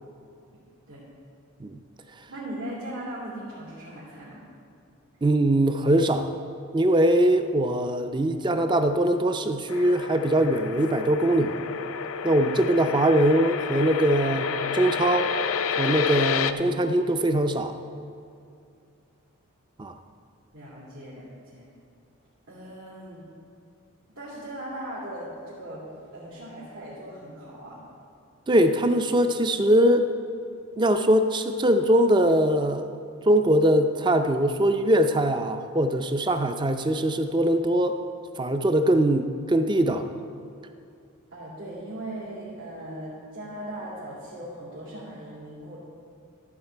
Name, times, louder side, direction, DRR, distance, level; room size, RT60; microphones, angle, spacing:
voice 1, 2.3-4.4 20.5-21.2 21.5-21.7 22.5-23.2 24.1-25.8 26.1-27.8 41.3-45.8, right 1 dB, 85° right, -11 dB, 2.8 m, -38 dB
voice 2, 5.2-6.3 6.7-11.6 12.2-15.3 15.8-17.7 19.8-19.9 28.5-30.1 30.8-32.9 33.3-38.0 38.4-40.0, right 1 dB, 20° right, 8 dB, 0.4 m, -22 dB
sound 1, 9.7-16.5, left 6 dB, 75° left, 0.4 m, -30 dB
13.5 x 7.2 x 4.5 m, 2.5 s
head